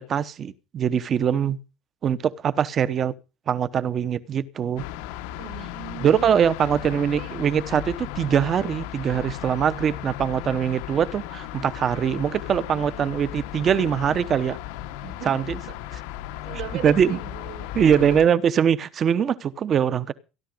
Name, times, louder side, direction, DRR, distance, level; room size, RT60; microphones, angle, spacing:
voice 1, 0.0-1.6 2.0-3.1 3.5-4.8 6.0-14.6 15.3-15.6 16.8-17.2 17.7-20.1, right 8 dB, 25° right, 0.9 m, -22 dB
sound 1, 4.8-18.3, left 13 dB, 75° left, 1.1 m, -36 dB
voice 2, 5.3-6.4 6.7-7.4 9.1-9.4 12.6-13.2 15.0-15.8 16.4-18.2, right 12 dB, 50° right, 2.0 m, -39 dB
16.0 x 11.5 x 5.2 m
cardioid pair, 180°, 0 cm